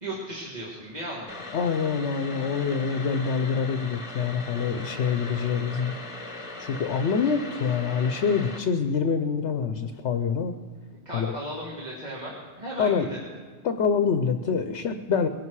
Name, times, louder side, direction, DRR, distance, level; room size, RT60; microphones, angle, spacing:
voice 1, 0.0-1.4 11.1-13.2, right 1 dB, 35° right, -6 dB, 2.2 m, -36 dB
sound 1, 1.3-8.6, left 2 dB, 25° left, 1.3 m, -39 dB
voice 2, 1.5-6.0 6.6-10.5 11.1-11.4 12.8-13.1 13.6-15.3, left 6 dB, 70° left, 8 dB, 1.0 m, -26 dB
21.5 x 11.5 x 4.7 m, 1.5 s
omnidirectional pair, 1.2 m